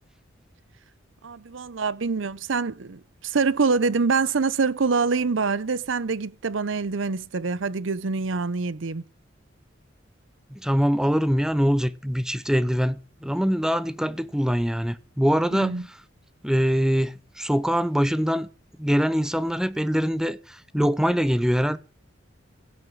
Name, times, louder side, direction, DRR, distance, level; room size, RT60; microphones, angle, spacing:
voice 1, 1.2-9.0 15.5-15.9, right 4 dB, 75° right, 0.7 m, -25 dB
voice 2, 10.5-15.8 16.4-18.5 18.8-21.8, equal, 5° right, 0.6 m, -23 dB
16.5 x 6.6 x 7.8 m
head